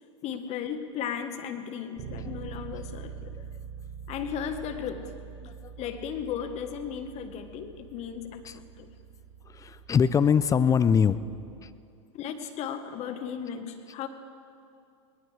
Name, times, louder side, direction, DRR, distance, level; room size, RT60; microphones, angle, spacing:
voice 1, 0.2-3.4 4.1-5.1 5.8-8.9 12.1-14.1, left 8 dB, 40° left, 8 dB, 1.4 m, -35 dB
Bass guitar, 2.0-11.8, right 7 dB, 45° right, 1.6 m, -44 dB
voice 2, 5.4-5.7 8.5-8.6 9.5-11.2 11.6-11.7, left 7 dB, 20° left, 15 dB, 0.5 m, -23 dB
22.5 x 19.0 x 3.4 m, 2.5 s
hypercardioid pair, 95°, 17 cm